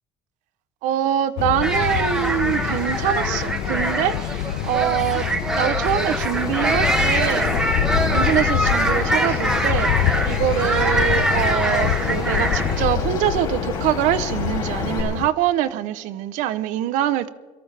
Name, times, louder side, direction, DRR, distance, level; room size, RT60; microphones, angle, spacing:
voice 1, 0.8-5.3 5.6-17.3, right 12 dB, 65° right, 0.7 m, -24 dB
sound 1, 1.4-15.3, left 13 dB, 80° left, 0.6 m, -26 dB
sound 2, 1.6-12.8, right 1 dB, 5° right, 0.9 m, -24 dB
Bird vocalization bird call bird song, 6.4-15.0, left 4 dB, 30° left, 2.9 m, -30 dB
23.0 x 14.0 x 3.3 m
cardioid pair, 175°, 14 cm